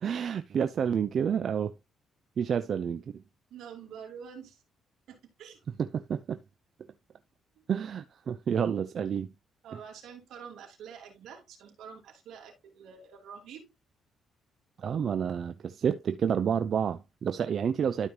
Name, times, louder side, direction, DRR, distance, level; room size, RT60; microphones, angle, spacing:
voice 1, 0.0-1.7 2.4-3.2 5.8-6.4 7.7-9.3 14.8-18.1, right 7 dB, 55° right, 0.7 m, -29 dB
voice 2, 3.5-4.6 5.1-5.6 7.6-7.7 9.6-13.7, right 7 dB, 80° right, 3.3 m, -47 dB
12.5 x 5.4 x 2.9 m
cardioid pair, 90°, 0 cm